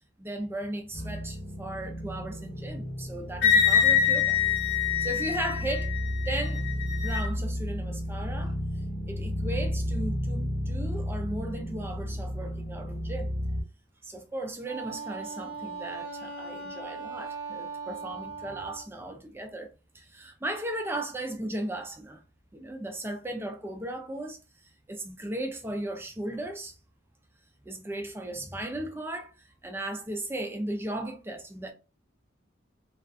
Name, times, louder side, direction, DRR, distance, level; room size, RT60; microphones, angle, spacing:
voice 1, 0.2-4.4 5.0-5.9 6.3-6.6 7.0-8.6 9.1-13.4 14.0-22.2 22.5-24.4 24.9-26.8 27.6-29.3 29.6-31.7, right 1 dB, 10° right, 0.4 m, -36 dB
sound 1, 0.9-13.6, equal, 20° left, 0.8 m, -33 dB
Wind instrument woodwind instrument, 3.4-7.3, left 8 dB, 50° left, 0.7 m, -25 dB
Wind instrument woodwind instrument 2, 14.6-18.9, right 4 dB, 75° right, 0.7 m, -39 dB
2.4 x 2.3 x 2.4 m
head